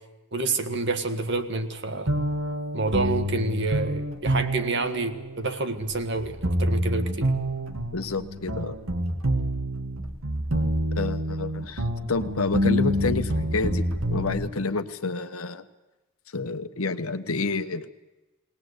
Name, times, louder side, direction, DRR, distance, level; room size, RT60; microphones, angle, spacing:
voice 1, 0.3-2.1 2.7-7.3, right 3 dB, 55° right, 8 dB, 1.6 m, -28 dB
sound 1, 2.1-14.5, equal, 75° right, 1.8 m, -27 dB
voice 2, 7.9-8.8 10.9-15.7 16.3-17.9, left 3 dB, 85° left, 9 dB, 1.2 m, -29 dB
20.5 x 19.5 x 8.1 m, 1.0 s
head